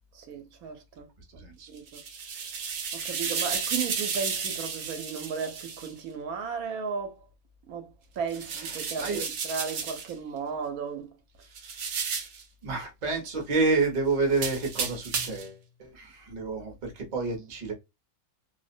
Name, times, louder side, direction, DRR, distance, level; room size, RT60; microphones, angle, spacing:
voice 1, 0.1-1.1 1.3-1.4 1.7-2.0 2.9-7.2 7.7-7.9 8.2-11.1, right 6 dB, 85° right, 1.1 m, -35 dB
voice 2, 1.4-1.7 8.5-9.2 11.5-12.3 12.6-17.7, right 3 dB, 40° right, 0.8 m, -30 dB
sound 1, 1.8-5.9 8.3-10.1 11.6-12.4 14.3-15.5, right 5 dB, 65° right, 0.8 m, -33 dB
2.5 x 2.1 x 2.5 m
omnidirectional pair, 1.5 m